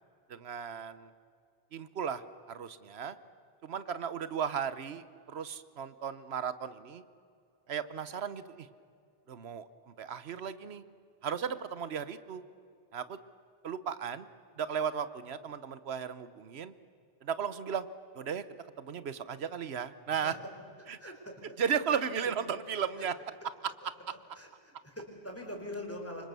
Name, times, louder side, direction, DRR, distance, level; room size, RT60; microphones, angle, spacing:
voice 1, 0.3-1.1 1.7-3.2 3.6-7.0 7.7-8.7 9.3-9.7 10.0-10.8 11.2-12.4 12.9-13.2 13.6-14.3 14.6-16.7 17.2-17.9 18.1-18.4 18.8-20.4 20.9-21.0 21.6-23.1 23.8-23.9, right 7 dB, 85° right, 14 dB, 1.1 m, -35 dB
voice 2, 21.0-21.4 21.8-21.9 22.2-22.3 23.0-23.1 24.4-26.2, left 1 dB, 15° left, 1 dB, 4.6 m, -43 dB
28.0 x 25.0 x 6.9 m, 2.4 s
omnidirectional pair, 1.0 m